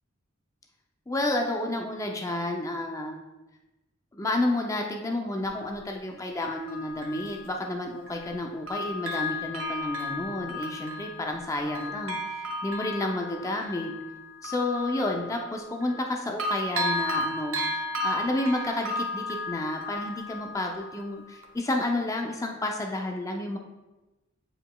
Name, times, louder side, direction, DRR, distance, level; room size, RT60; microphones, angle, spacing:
voice 1, 1.1-3.2 4.1-12.2 12.6-13.9 14.4-23.6, left 1 dB, 15° left, 2 dB, 0.5 m, -30 dB
Bell, 5.4-5.5 6.4-8.4 8.7-16.1 16.4-21.0 21.4-21.5, left 1 dB, 90° right, 0.8 m, -34 dB
8.8 x 4.8 x 2.3 m, 1.1 s
head